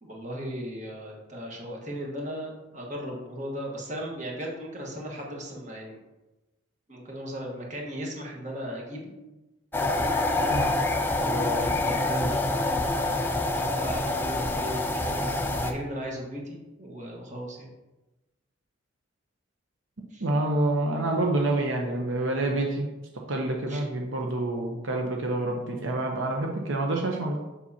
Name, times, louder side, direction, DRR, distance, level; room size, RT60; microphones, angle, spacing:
voice 1, 0.0-6.0 6.9-9.1 11.2-12.6 13.5-17.7 20.1-20.2 23.7-23.8, equal, 40° right, -1 dB, 1.4 m, -36 dB
sound 1, 9.7-15.7, left 2 dB, 10° left, 0.4 m, -26 dB
voice 2, 20.2-22.9 23.3-27.4, right 2 dB, 80° right, 1 dB, 0.8 m, -27 dB
7.4 x 5.5 x 2.8 m, 1.1 s
head